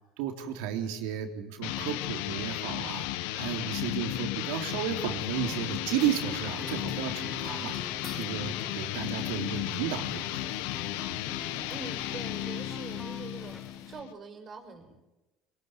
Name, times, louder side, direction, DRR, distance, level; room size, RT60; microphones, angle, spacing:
voice 1, 0.2-7.8 8.1-10.4, right 9 dB, 75° right, 5 dB, 3.7 m, -33 dB
sound 1, 1.6-14.1, left 15 dB, 80° left, 1.4 m, -34 dB
sound 2, 5.3-14.0, equal, 5° left, 1.5 m, -46 dB
voice 2, 11.7-15.0, right 5 dB, 40° right, 6 dB, 5.6 m, -44 dB
26.5 x 20.0 x 9.4 m, 1.1 s
supercardioid pair, 90°, 0 cm